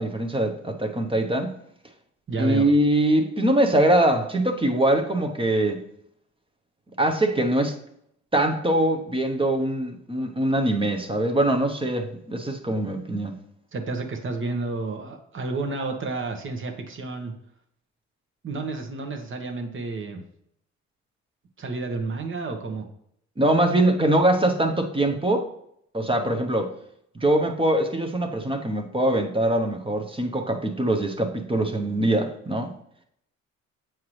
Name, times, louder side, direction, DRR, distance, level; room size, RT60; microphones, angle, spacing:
voice 1, 0.0-1.5 2.4-5.8 7.0-7.7 8.3-13.4 23.4-25.5 25.9-26.7 27.1-32.7, right 1 dB, 15° right, 4 dB, 0.9 m, -23 dB
voice 2, 2.3-2.7 13.7-17.3 18.4-20.2 21.6-22.9, right 3 dB, 40° right, 4 dB, 1.2 m, -30 dB
7.5 x 4.6 x 3.2 m, 0.72 s
cardioid pair, 90°, 30 cm